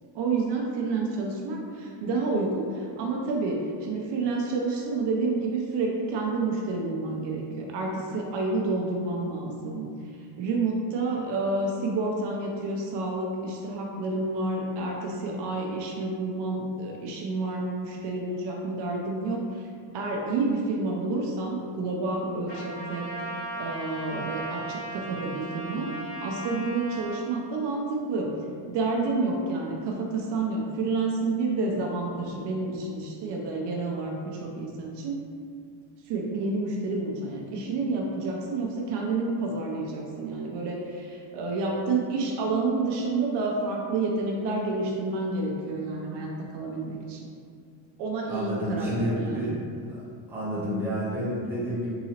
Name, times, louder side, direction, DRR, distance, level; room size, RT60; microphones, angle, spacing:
voice 1, 0.1-10.1 10.4-19.7 19.9-23.1 23.6-25.9 26.2-28.3 28.7-35.2 36.1-47.3 48.0-49.5, right 3 dB, 65° right, 0 dB, 0.6 m, -29 dB
Trumpet, 22.5-27.1, right 2 dB, 20° left, 1.4 m, -36 dB
voice 2, 48.3-49.6 49.9-50.0 50.3-51.9, equal, 5° right, -10 dB, 0.7 m, -29 dB
3.8 x 2.8 x 2.8 m, 2.3 s
cardioid pair, 180°, 45 cm